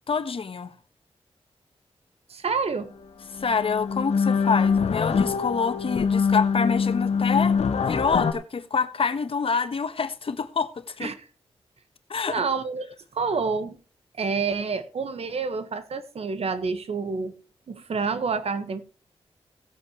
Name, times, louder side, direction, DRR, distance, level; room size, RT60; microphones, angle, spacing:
voice 1, 0.1-0.7 3.3-7.6 7.8-11.1 12.1-12.4, left 5 dB, 60° left, 1.4 m, -27 dB
voice 2, 2.3-2.9 11.0-11.3 12.3-12.9 13.1-13.8 14.2-17.3 17.7-18.8, right 5 dB, 70° right, 1.6 m, -28 dB
sound 1, 2.9-3.0 3.3-8.3, left 6 dB, 75° left, 1.4 m, -24 dB
17.5 x 8.4 x 3.2 m
cardioid pair, 75°, 11 cm